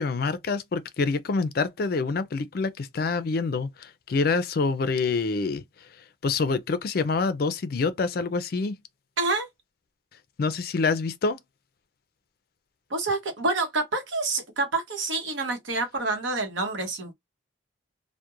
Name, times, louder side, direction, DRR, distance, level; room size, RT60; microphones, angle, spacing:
voice 1, 0.0-5.6 6.2-8.7 10.4-11.4, left 4 dB, 50° left, 0.4 m, -26 dB
voice 2, 9.2-9.5 12.9-17.1, right 3 dB, 75° right, 0.9 m, -27 dB
2.4 x 2.1 x 2.9 m
head